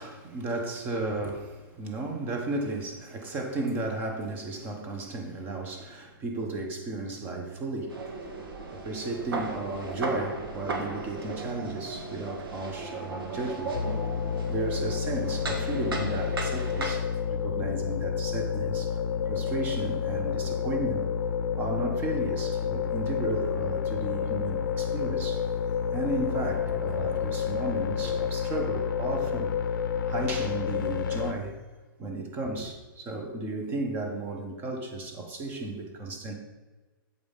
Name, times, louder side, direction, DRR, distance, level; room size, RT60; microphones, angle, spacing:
voice 1, 0.0-8.0 8.7-13.8 14.3-19.0 19.3-21.0 21.6-25.5 25.9-29.5 30.0-31.6 32.0-36.3, right 2 dB, 15° right, 4 dB, 0.8 m, -34 dB
sound 1, 7.9-17.0, right 3 dB, 85° right, 1.7 m, -36 dB
sound 2, 13.7-31.3, left 7 dB, 60° left, 0.7 m, -29 dB
8.1 x 5.1 x 5.3 m, 1.3 s
hypercardioid pair, 170°, 12 cm